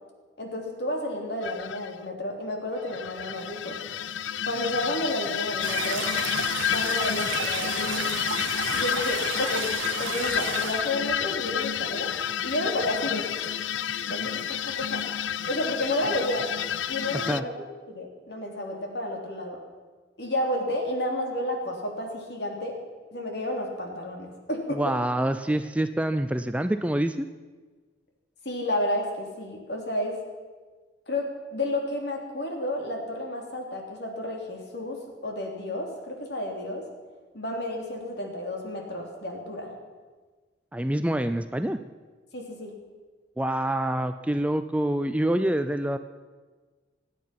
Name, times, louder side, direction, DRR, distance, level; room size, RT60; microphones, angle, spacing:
voice 1, 0.4-3.8 4.4-6.1 6.6-8.1 8.7-9.7 10.0-12.1 12.4-13.3 14.1-15.1 15.5-16.5 16.9-19.6 20.2-22.8 23.1-25.0 28.4-30.2 31.1-36.9 37.3-39.7 42.3-42.7, left 1 dB, 60° left, 1 dB, 3.1 m, -31 dB
sound 1, 1.4-1.9 2.8-17.4, left 9 dB, 75° left, 0.5 m, -30 dB
sound 2, 5.6-11.0, right 7 dB, 85° right, 0.9 m, -33 dB
voice 2, 24.7-27.3 40.7-41.8 43.4-46.0, right 1 dB, 5° right, 9 dB, 0.4 m, -26 dB
25.5 x 9.5 x 5.9 m, 1.4 s
head